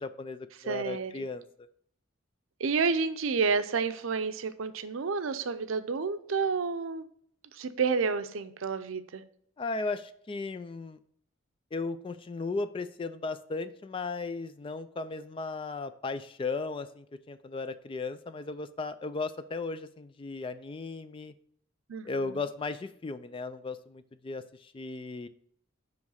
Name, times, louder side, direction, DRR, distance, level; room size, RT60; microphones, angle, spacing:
voice 1, 0.0-1.7 9.6-11.0 11.7-21.3 22.0-25.3, left 3 dB, 25° left, 12 dB, 0.3 m, -36 dB
voice 2, 0.6-1.3 2.6-7.1 7.5-9.2 21.9-22.4, right 5 dB, 80° right, 11 dB, 0.5 m, -30 dB
9.5 x 3.2 x 5.4 m, 0.64 s
head